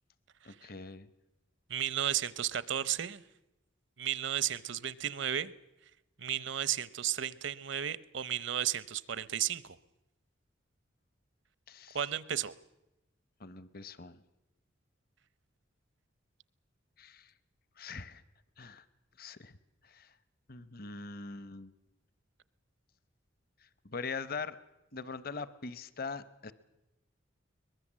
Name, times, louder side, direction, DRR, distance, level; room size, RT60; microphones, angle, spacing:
voice 1, 0.4-1.1 11.7-12.0 13.4-14.2 17.0-17.3 17.8-18.2 18.6-18.8 19.2-19.6 19.8-20.1 20.5-21.7 23.8-24.6 24.9-26.5, left 4 dB, 45° left, 16 dB, 0.8 m, -42 dB
voice 2, 1.7-3.2 4.0-5.5 6.2-9.8 11.9-12.5, right 10 dB, 65° right, 18 dB, 0.7 m, -33 dB
22.0 x 21.0 x 7.4 m, 0.96 s
head